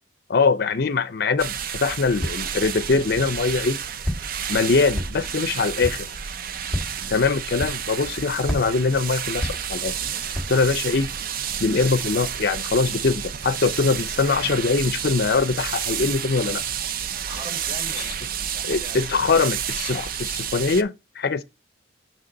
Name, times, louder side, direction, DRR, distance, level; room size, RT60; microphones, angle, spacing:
voice 1, 0.3-3.8 4.5-6.1 7.1-9.9 10.5-11.1 11.6-16.6 18.0-18.1 18.6-21.4, left 4 dB, 55° left, 0.6 m, -22 dB
sound 1, 1.4-20.8, right 8 dB, 50° right, 0.5 m, -30 dB
Walk footsteps, 2.2-2.6 3.2-3.7 4.0-4.5 4.9-5.4 5.8-6.1 6.6-7.1 7.6-8.1 8.4-10.0 10.3-10.7, equal, ahead, 1.7 m, -31 dB
voice 2, 17.3-19.6, right 1 dB, 30° right, 3.2 m, -41 dB
6.3 x 5.8 x 4.0 m
head